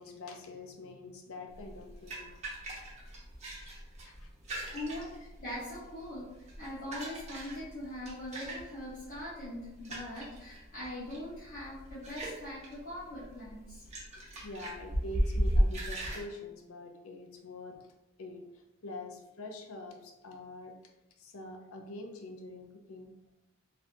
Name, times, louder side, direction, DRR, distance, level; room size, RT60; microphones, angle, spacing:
voice 1, 0.0-2.3 2.7-2.8 4.0-4.6 14.4-17.9 18.2-20.7 21.2-23.1, left 2 dB, 75° left, 3 dB, 0.5 m, -45 dB
sound 1, 1.5-16.2, equal, 30° right, 0.8 m, -36 dB
voice 2, 4.7-13.8, left 1 dB, 40° left, -10 dB, 1.0 m, -42 dB
3.2 x 2.6 x 2.6 m, 0.98 s
head